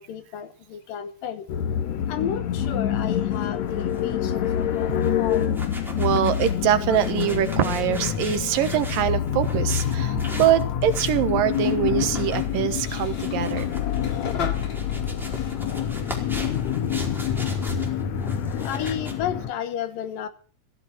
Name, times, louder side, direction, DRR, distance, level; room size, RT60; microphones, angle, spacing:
voice 1, 0.0-1.5 2.1-5.5 18.6-20.3, left 9 dB, 80° left, 3.2 m, -32 dB
sound 1, 1.5-19.5, left 9 dB, 65° left, 2.2 m, -26 dB
sound 2, 2.6-19.1, equal, ahead, 4.1 m, -40 dB
voice 2, 6.0-13.7 17.0-17.1, right 11 dB, 90° right, 2.9 m, -23 dB
sound 3, 12.7-17.7, left 5 dB, 35° left, 2.7 m, -39 dB
16.0 x 14.5 x 6.1 m
omnidirectional pair, 3.9 m